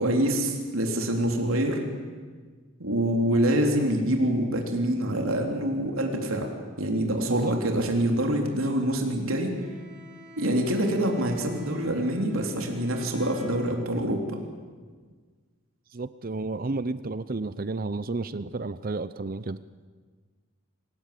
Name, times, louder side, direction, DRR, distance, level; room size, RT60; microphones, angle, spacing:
voice 1, 0.0-1.8 2.8-6.5 6.8-9.5 10.4-14.4, right 1 dB, 80° right, 2 dB, 3.5 m, -25 dB
Bowed string instrument, 9.5-14.1, equal, 5° right, 7.7 m, -48 dB
voice 2, 15.9-19.6, right 3 dB, 45° right, 15 dB, 0.6 m, -31 dB
26.5 x 18.0 x 8.4 m, 1.5 s
head